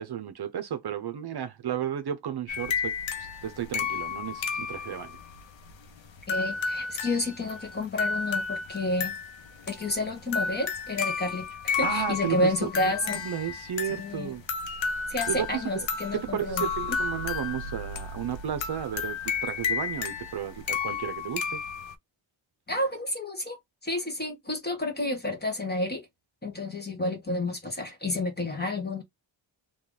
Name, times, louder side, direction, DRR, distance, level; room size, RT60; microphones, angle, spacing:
voice 1, 0.0-5.2 11.8-12.7 13.0-14.7 15.3-15.7 16.1-21.6, right 9 dB, 55° right, 0.7 m, -33 dB
sound 1, 2.5-21.9, left 5 dB, 70° left, 0.8 m, -32 dB
voice 2, 6.3-9.1 9.7-13.2 13.9-14.3 15.1-16.7 22.7-23.6 23.8-26.0 26.4-29.0, left 2 dB, 20° left, 1.5 m, -30 dB
3.0 x 2.4 x 3.8 m
cardioid pair, 80°, 47 cm